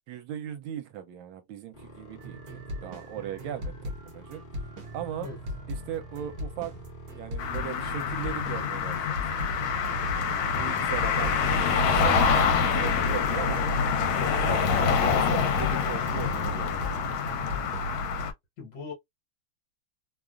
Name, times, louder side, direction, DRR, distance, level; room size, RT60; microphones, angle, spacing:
voice 1, 0.1-4.4 4.9-5.3 5.7-6.7 7.2-9.4 10.6-13.6 14.2-17.0, right 10 dB, 80° right, 1.3 m, -38 dB
sound 1, 1.7-7.7, right 1 dB, 35° left, 0.9 m, -47 dB
sound 2, 2.2-16.4 16.8-17.9, left 1 dB, 65° right, 0.9 m, -39 dB
sound 3, 7.4-18.3, left 5 dB, 80° left, 1.4 m, -26 dB
voice 2, 18.6-18.9, left 4 dB, 60° left, 1.5 m, -40 dB
3.3 x 2.3 x 2.3 m
omnidirectional pair, 2.3 m